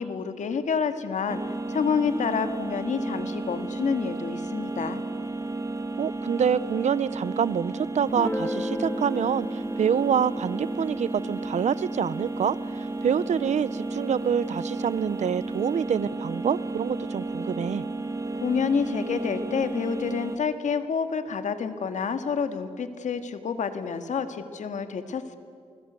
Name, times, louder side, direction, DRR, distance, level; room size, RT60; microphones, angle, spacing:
voice 1, 0.0-1.4 1.7-5.0 18.4-25.4, left 6 dB, 85° left, 9 dB, 1.9 m, -28 dB
sound 1, 1.3-20.4, right 2 dB, 25° right, 1.6 m, -33 dB
voice 2, 6.0-17.8, right 8 dB, 75° right, 19 dB, 0.7 m, -26 dB
Guitar, 8.1-13.6, left 1 dB, 10° left, 1.0 m, -36 dB
29.0 x 21.0 x 8.2 m, 2.4 s
wide cardioid pair, 110°, 12 cm